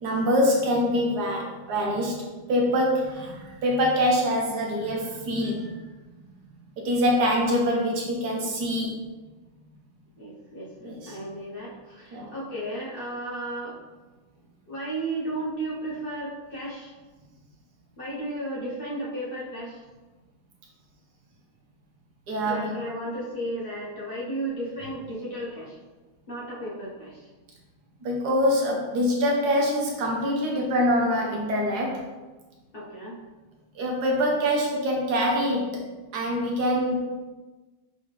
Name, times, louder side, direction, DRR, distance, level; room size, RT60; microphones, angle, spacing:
voice 1, 0.0-5.8 6.8-8.9 10.8-11.2 12.1-12.3 22.3-22.8 28.0-32.0 33.7-35.9 36.1-37.2, equal, 65° right, -2 dB, 1.4 m, -25 dB
voice 2, 10.2-13.7 14.7-16.9 18.0-19.8 22.4-25.8 26.3-27.2 32.7-33.2, right 1 dB, 40° left, -6 dB, 1.0 m, -34 dB
4.1 x 4.0 x 3.2 m, 1.2 s
omnidirectional pair, 2.0 m